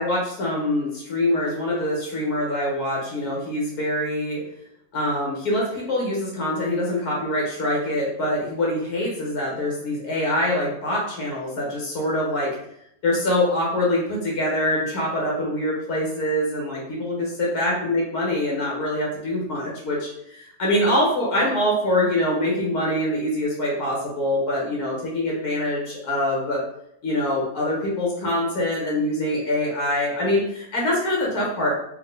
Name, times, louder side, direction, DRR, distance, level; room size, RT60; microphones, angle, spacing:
voice 1, 0.0-4.4 4.9-12.5 13.0-26.6 27.0-31.7, left 1 dB, 85° left, -3 dB, 1.7 m, -24 dB
3.7 x 2.9 x 3.8 m, 0.74 s
omnidirectional pair, 1.6 m